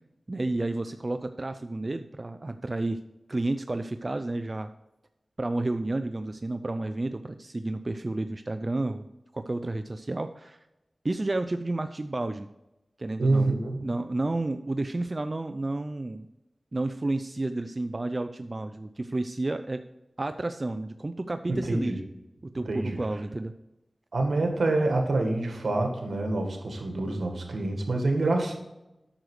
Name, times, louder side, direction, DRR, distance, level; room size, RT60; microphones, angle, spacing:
voice 1, 0.3-3.0 3.3-4.7 5.4-9.1 9.3-10.6 11.0-12.5 13.0-16.3 16.7-19.8 20.2-22.0 22.4-23.5, right 2 dB, 40° right, 9 dB, 0.5 m, -31 dB
voice 2, 13.2-13.9 21.5-22.0 22.7-23.0 24.1-28.6, right 2 dB, 90° right, 3 dB, 1.8 m, -26 dB
8.9 x 6.5 x 4.8 m, 0.92 s
wide cardioid pair, 55°, 0 cm